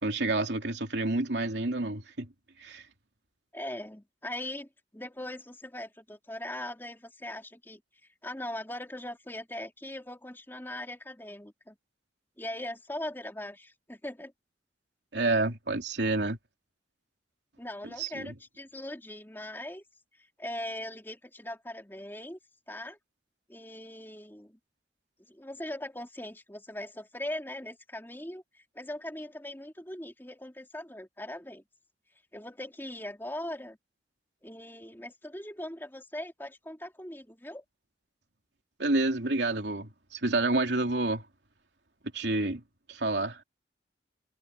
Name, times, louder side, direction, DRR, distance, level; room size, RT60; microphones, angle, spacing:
voice 1, 0.0-2.3 2.6-2.8 15.1-16.4 18.0-18.3 38.8-41.2 42.1-42.6 42.9-43.4, right 2 dB, 75° right, 3.0 m, -29 dB
voice 2, 3.5-7.8 8.2-11.8 12.4-14.3 17.6-19.8 20.4-22.4 22.7-23.0 23.5-24.6 25.3-31.6 32.3-33.8 34.4-37.6, left 1 dB, 10° left, 2.9 m, -40 dB
head